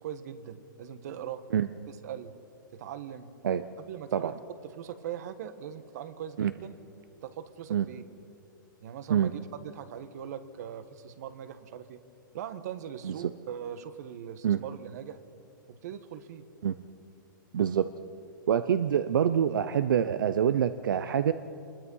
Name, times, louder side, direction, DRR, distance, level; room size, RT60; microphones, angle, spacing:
voice 1, 0.0-1.4 1.9-2.3 2.7-3.3 3.8-4.3 4.6-6.7 7.2-8.0 8.8-12.0 12.3-15.2 15.7-16.5, right 9 dB, 50° right, 12 dB, 1.4 m, -41 dB
voice 2, 17.5-17.9 18.5-21.3, right 9 dB, 75° right, 11 dB, 0.8 m, -26 dB
25.0 x 21.0 x 5.6 m, 2.7 s
hypercardioid pair, 150°, 11 cm